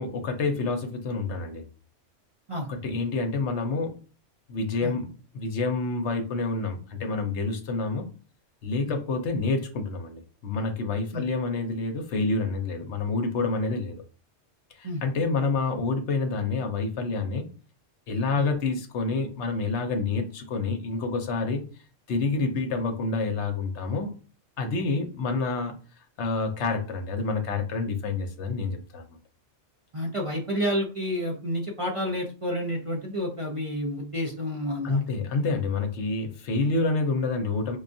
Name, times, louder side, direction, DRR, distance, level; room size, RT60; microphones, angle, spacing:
voice 1, 0.0-1.6 2.7-3.9 4.5-8.1 8.6-14.0 14.8-17.5 18.1-21.6 22.1-24.1 24.6-25.7 26.2-29.0 34.8-37.8, left 3 dB, 70° left, 6 dB, 0.9 m, -28 dB
voice 2, 29.9-35.0, equal, 35° right, -2 dB, 0.5 m, -30 dB
5.1 x 2.3 x 2.6 m, 0.37 s
omnidirectional pair, 1.2 m